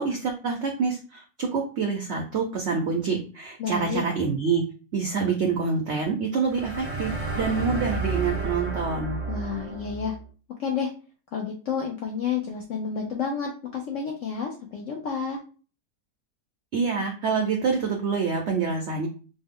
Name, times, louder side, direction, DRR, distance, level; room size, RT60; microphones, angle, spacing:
voice 1, 0.0-4.6 4.9-9.2 16.7-19.1, right 5 dB, 80° right, 2 dB, 0.6 m, -26 dB
voice 2, 3.6-4.0 9.3-10.1 10.6-10.9 11.3-15.4, left 6 dB, 75° left, 1 dB, 0.7 m, -30 dB
sound 1, 6.4-10.2, right 3 dB, 35° right, 0.6 m, -31 dB
3.1 x 2.1 x 3.5 m, 0.37 s
omnidirectional pair, 1.8 m